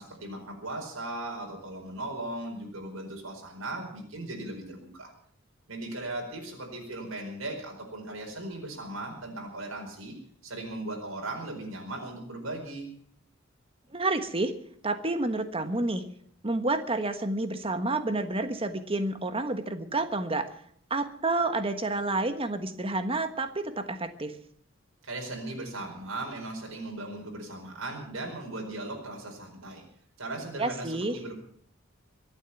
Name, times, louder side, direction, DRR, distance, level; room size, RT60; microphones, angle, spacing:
voice 1, 0.0-5.1 5.7-10.2 10.4-12.9 25.0-29.8 30.2-31.3, right 2 dB, 85° right, 1 dB, 4.7 m, -38 dB
voice 2, 13.9-14.5 14.8-16.0 16.4-20.5 20.9-24.3 30.6-31.1, right 2 dB, 25° right, 9 dB, 1.4 m, -29 dB
24.0 x 8.3 x 7.2 m, 0.63 s
head